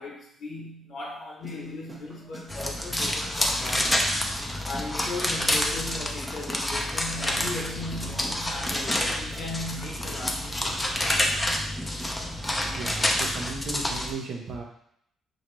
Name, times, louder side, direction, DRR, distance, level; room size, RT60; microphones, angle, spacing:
voice 1, 0.0-4.0 4.6-11.0, left 2 dB, 65° left, -1 dB, 0.9 m, -37 dB
sound 1, 1.4-13.4, right 1 dB, 15° right, 0.9 m, -45 dB
sound 2, 2.5-14.1, left 1 dB, 15° left, 0.6 m, -28 dB
voice 2, 12.7-14.6, right 4 dB, 65° right, 0 dB, 1.0 m, -35 dB
4.9 x 2.7 x 3.1 m, 0.71 s
cardioid pair, 90°, 0 cm